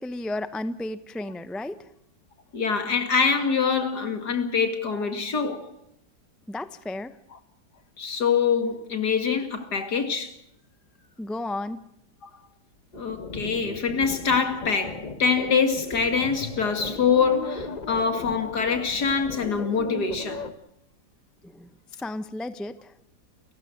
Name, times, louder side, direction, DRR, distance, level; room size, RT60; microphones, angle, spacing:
voice 1, 0.0-1.9 6.5-7.2 11.2-11.8 21.4-21.7 22.0-22.9, left 2 dB, ahead, 0.5 m, -33 dB
voice 2, 2.5-5.7 8.0-10.3 12.2-12.3 12.9-20.4, left 5 dB, 65° left, 2.8 m, -24 dB
sound 1, 12.9-20.5, left 2 dB, 25° left, 1.3 m, -37 dB
30.0 x 16.0 x 6.6 m
omnidirectional pair, 1.9 m